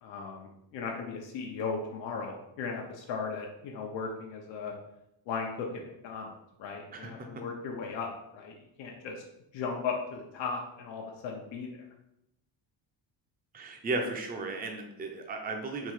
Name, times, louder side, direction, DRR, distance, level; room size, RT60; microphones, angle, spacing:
voice 1, 0.0-4.7 5.3-6.3 6.6-9.2 9.5-11.7, left 5 dB, 85° left, 0 dB, 0.8 m, -37 dB
voice 2, 6.9-7.3 13.5-15.9, right 3 dB, 20° right, 3 dB, 0.5 m, -35 dB
3.8 x 2.8 x 4.7 m, 0.85 s
cardioid pair, 135°, 43 cm